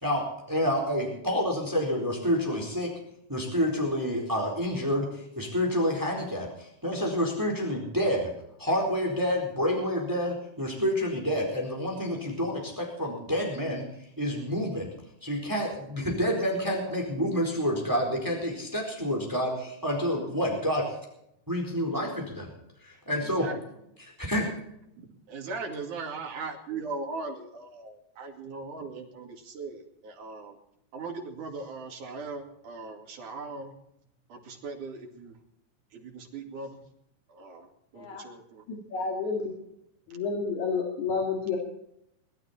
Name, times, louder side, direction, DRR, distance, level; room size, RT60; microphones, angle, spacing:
voice 1, 0.0-2.9 3.3-8.3 8.6-13.9 14.2-14.9 15.2-21.0 21.5-22.5 22.8-23.5 24.0-24.5, equal, 5° right, 1 dB, 4.0 m, -28 dB
voice 2, 23.2-23.6 24.4-24.5 25.0-30.6 30.9-33.7 34.3-35.4 35.9-36.8 37.3-38.7, right 4 dB, 75° right, 2 dB, 3.9 m, -39 dB
voice 3, 38.7-39.5 40.1-41.6, left 4 dB, 70° left, 0 dB, 3.7 m, -30 dB
21.0 x 12.5 x 4.4 m, 0.78 s
omnidirectional pair, 3.6 m